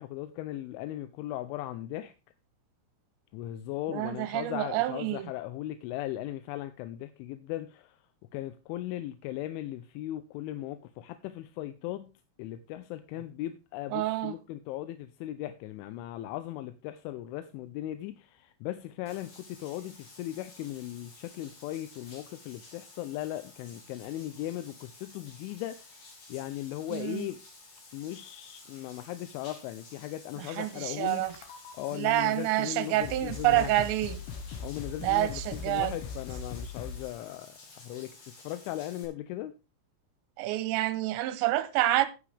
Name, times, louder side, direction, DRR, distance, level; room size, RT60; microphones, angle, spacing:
voice 1, 0.0-2.1 3.3-8.0 8.3-12.1 12.4-27.4 27.9-31.3 31.7-33.8 34.6-39.5, left 14 dB, 90° left, 3.1 m, -38 dB
voice 2, 3.9-5.3 13.9-14.3 26.9-27.3 30.4-31.3 31.9-34.2 35.0-35.9 40.4-42.1, right 16 dB, 80° right, 2.9 m, -28 dB
Bathtub (filling or washing), 19.1-39.1, left 3 dB, 45° left, 4.4 m, -53 dB
sound 1, 31.2-31.9 32.6-32.7 33.0-37.2, left 5 dB, 70° left, 3.0 m, -40 dB
11.0 x 9.9 x 3.4 m
omnidirectional pair, 5.4 m